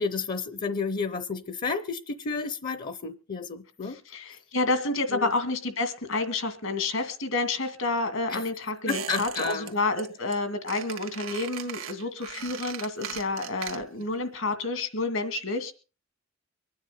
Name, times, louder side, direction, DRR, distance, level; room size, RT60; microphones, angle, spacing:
voice 1, 0.0-4.0 5.1-5.3 8.3-8.4 8.9-9.7, left 4 dB, 45° left, 0.7 m, -31 dB
voice 2, 3.8-15.7, left 3 dB, 80° left, 2.2 m, -29 dB
Squeak, 8.9-9.7 10.0-10.4 10.7-14.1 14.3-14.4, right 8 dB, 85° right, 1.8 m, -38 dB
24.0 x 9.6 x 3.9 m
head